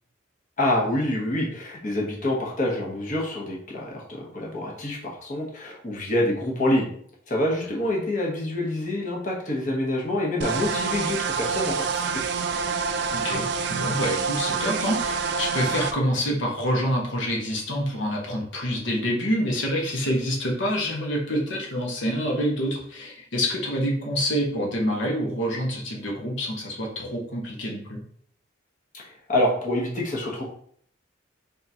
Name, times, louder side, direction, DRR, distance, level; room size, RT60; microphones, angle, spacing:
voice 1, 0.6-6.9 7.3-12.2 28.9-29.0 29.3-30.5, left 1 dB, 40° left, -2 dB, 1.0 m, -26 dB
sound 1, 10.4-15.9, right 5 dB, 55° right, 0.3 m, -27 dB
voice 2, 13.1-28.0, equal, 65° left, -1 dB, 1.0 m, -27 dB
3.7 x 3.6 x 2.8 m, 0.63 s
head